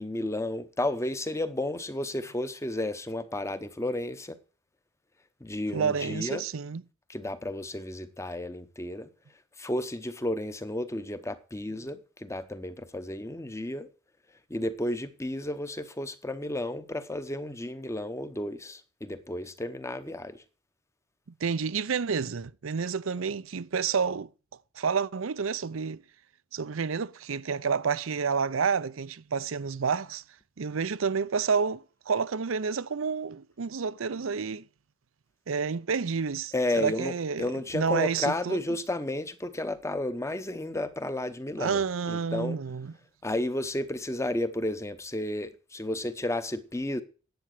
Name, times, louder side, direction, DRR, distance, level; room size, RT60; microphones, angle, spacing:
voice 1, 0.0-4.4 5.4-6.4 7.1-9.1 9.6-13.9 14.5-20.4 36.5-42.6 43.2-47.0, left 1 dB, 15° left, 0.9 m, -32 dB
voice 2, 5.7-6.8 21.4-24.3 24.8-26.0 26.5-30.2 30.6-34.6 35.5-38.6 41.6-42.9, right 5 dB, 85° right, 0.6 m, -29 dB
10.5 x 7.9 x 6.5 m
head